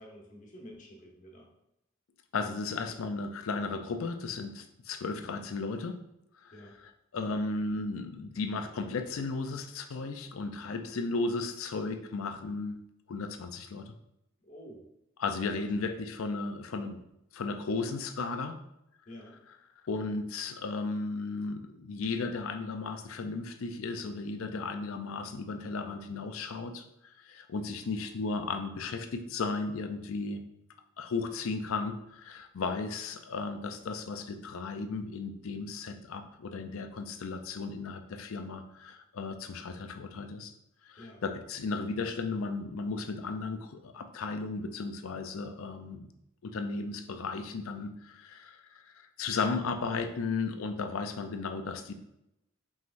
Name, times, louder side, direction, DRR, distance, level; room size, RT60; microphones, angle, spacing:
voice 1, 0.0-1.5 6.5-6.8 14.4-14.9 15.6-15.7 19.1-19.4 41.0-41.2, equal, 40° left, -1 dB, 1.0 m, -49 dB
voice 2, 2.3-6.0 6.4-6.5 7.1-12.8 13.1-13.9 15.2-17.0 17.3-18.6 19.8-30.4 31.0-40.5 40.9-46.1 46.4-51.9, left 4 dB, 85° left, 7 dB, 0.5 m, -35 dB
5.5 x 3.2 x 2.6 m, 0.82 s
head